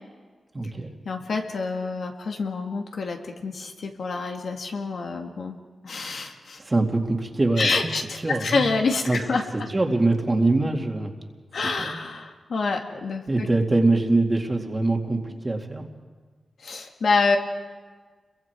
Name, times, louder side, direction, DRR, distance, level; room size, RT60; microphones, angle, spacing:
voice 1, 0.5-0.9 6.6-7.7 8.2-8.7 9.1-9.2 9.5-11.1 11.6-12.0 13.3-15.8, right 2 dB, 25° right, 2 dB, 2.2 m, -23 dB
voice 2, 1.1-5.6 5.8-6.6 7.6-9.7 11.5-13.5 16.6-17.4, left 4 dB, 75° left, 2 dB, 2.0 m, -27 dB
30.0 x 22.5 x 4.7 m, 1.4 s
wide cardioid pair, 105°, 0 cm